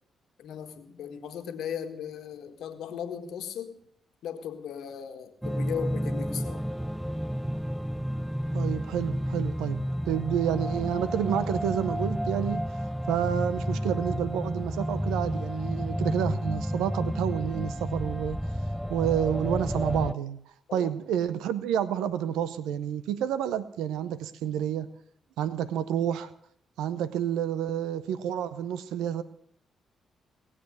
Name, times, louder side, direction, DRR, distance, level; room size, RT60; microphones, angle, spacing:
voice 1, 0.4-3.8 4.2-6.6 20.7-20.9, left 8 dB, 75° left, 7 dB, 1.6 m, -37 dB
sound 1, 5.4-20.1, equal, 5° right, 0.5 m, -31 dB
voice 2, 8.5-9.8 10.1-12.6 13.1-18.4 18.9-20.4 20.7-24.9 25.4-26.3 26.8-29.2, right 10 dB, 80° right, 15 dB, 0.6 m, -29 dB
19.0 x 7.5 x 7.8 m, 0.70 s
hypercardioid pair, 50°, 0 cm